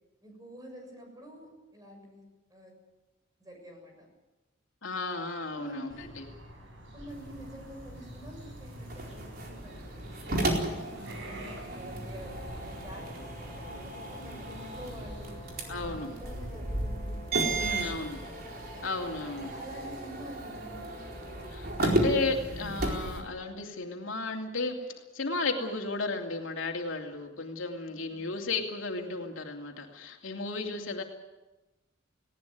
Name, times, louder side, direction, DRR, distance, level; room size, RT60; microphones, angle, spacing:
voice 1, 0.2-2.8 3.4-4.1 5.5-6.1 6.9-11.2 11.7-15.4 15.8-18.4 19.2-20.9 27.9-28.3 30.6-30.8, equal, 20° right, 2 dB, 7.2 m, -48 dB
voice 2, 4.8-6.2 15.7-16.1 17.6-18.2 18.8-19.5 21.5-24.9 25.1-31.0, left 3 dB, 85° left, 2 dB, 2.8 m, -34 dB
sound 1, 5.9-16.0, right 1 dB, 70° right, 7.8 m, -48 dB
sound 2, 7.1-23.2, right 1 dB, 50° right, 4.3 m, -34 dB
sound 3, 12.2-21.5, right 1 dB, 25° left, 1.8 m, -51 dB
19.5 x 18.0 x 9.4 m, 1.1 s
head